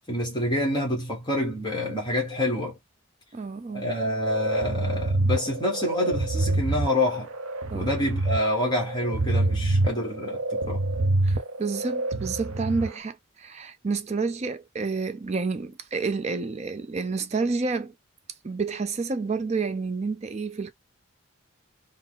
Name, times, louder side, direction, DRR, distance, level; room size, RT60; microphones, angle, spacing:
voice 1, 0.1-2.7 3.7-7.3 7.7-10.8, left 1 dB, 20° left, 1.2 m, -27 dB
voice 2, 3.3-3.9 7.7-7.9 11.2-17.9 18.4-20.7, right 4 dB, 30° right, 0.4 m, -29 dB
sound 1, 4.3-12.9, right 2 dB, 75° right, 0.6 m, -26 dB
4.0 x 2.0 x 3.8 m
head